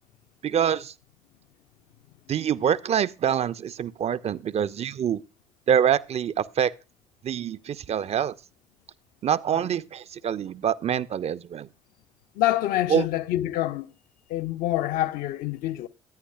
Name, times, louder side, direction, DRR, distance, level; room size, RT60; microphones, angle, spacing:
voice 1, 0.4-0.9 2.3-5.2 5.7-6.7 7.2-8.3 9.2-11.7 12.9-13.1, right 9 dB, 40° right, 0.6 m, -25 dB
voice 2, 12.4-13.9 14.3-15.9, left 14 dB, 60° left, 0.7 m, -26 dB
16.0 x 9.7 x 2.3 m
figure-of-eight pair, 45°, 17 cm